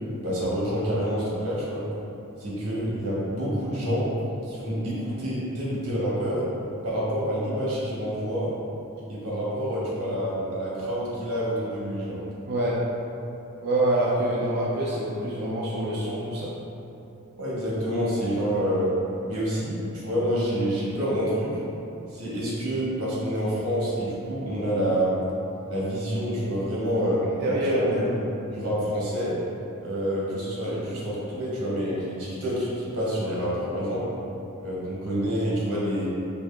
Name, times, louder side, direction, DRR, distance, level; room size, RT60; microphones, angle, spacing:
voice 1, 0.2-1.8 2.4-4.1 4.4-6.4 6.8-8.5 9.1-12.2 17.4-18.9 19.2-21.5 22.1-25.2 25.7-28.1 28.5-29.4 29.8-34.0 34.6-36.1, equal, 85° right, -7 dB, 1.3 m, -27 dB
voice 2, 12.5-12.8 13.6-16.5 27.4-27.7, right 1 dB, 45° right, -6 dB, 0.4 m, -26 dB
4.6 x 2.3 x 3.2 m, 2.9 s
head